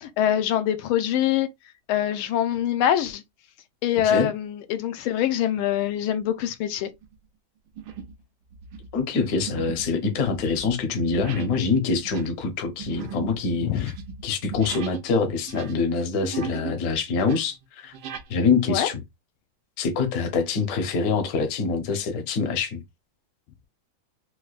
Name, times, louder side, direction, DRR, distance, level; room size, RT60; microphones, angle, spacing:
voice 1, 0.0-1.5 1.9-3.2 3.8-6.9 13.6-13.9 18.7-18.9, left 10 dB, 80° left, 1.4 m, -24 dB
sound 1, 6.1-6.4 6.9-7.1 7.8-8.2 8.5-15.1 15.4-16.8 17.1-18.3, right 6 dB, 75° right, 1.4 m, -39 dB
voice 2, 8.9-13.9 14.2-17.9 18.3-19.0 19.8-22.8, left 4 dB, 60° left, 1.0 m, -25 dB
4.6 x 2.2 x 2.3 m
omnidirectional pair, 2.3 m